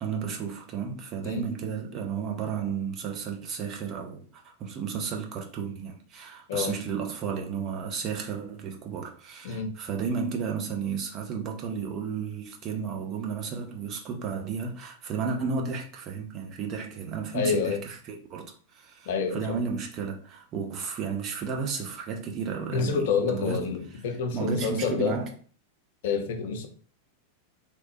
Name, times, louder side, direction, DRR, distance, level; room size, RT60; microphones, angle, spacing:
voice 1, 0.0-23.7 24.3-25.3, right 6 dB, 35° right, 0.6 m, -33 dB
voice 2, 17.3-17.8 19.1-19.6 22.7-25.2 26.0-26.7, left 5 dB, 55° left, 0.5 m, -28 dB
3.0 x 2.0 x 2.9 m
figure-of-eight pair, 90°, 0 cm